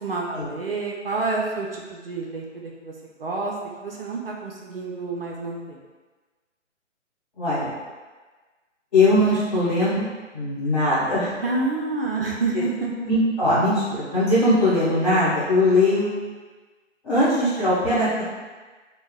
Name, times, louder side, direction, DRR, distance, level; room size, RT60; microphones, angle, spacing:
voice 1, 0.0-2.9 3.2-3.5 3.8-5.8 11.4-13.1, right 3 dB, 50° right, -2 dB, 0.4 m, -28 dB
voice 2, 7.4-7.7 8.9-10.1 10.3-11.3 13.1-16.1 17.0-18.2, left 1 dB, 30° left, -12 dB, 1.3 m, -20 dB
3.5 x 2.0 x 2.3 m, 1.3 s
figure-of-eight pair, 140°, 37 cm